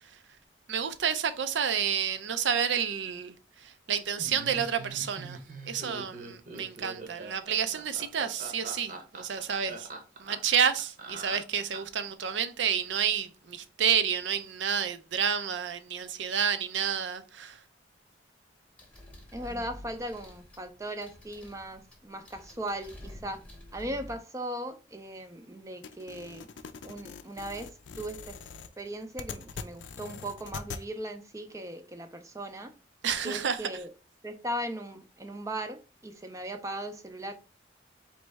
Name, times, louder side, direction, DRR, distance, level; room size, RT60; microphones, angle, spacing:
voice 1, 0.7-5.4 5.7-9.9 10.2-17.6 33.0-33.6, right 7 dB, 75° right, 0.5 m, -30 dB
Laughter, 4.2-12.0, right 3 dB, 45° right, 0.8 m, -43 dB
sound 1, 18.8-24.2, left 1 dB, 5° left, 0.9 m, -49 dB
voice 2, 19.3-23.4 23.7-26.5 26.8-28.4 28.8-32.7 33.2-33.9 34.2-37.3, right 1 dB, 15° right, 0.4 m, -38 dB
sound 2, 25.8-30.8, left 5 dB, 75° left, 0.4 m, -43 dB
4.2 x 3.1 x 3.4 m
head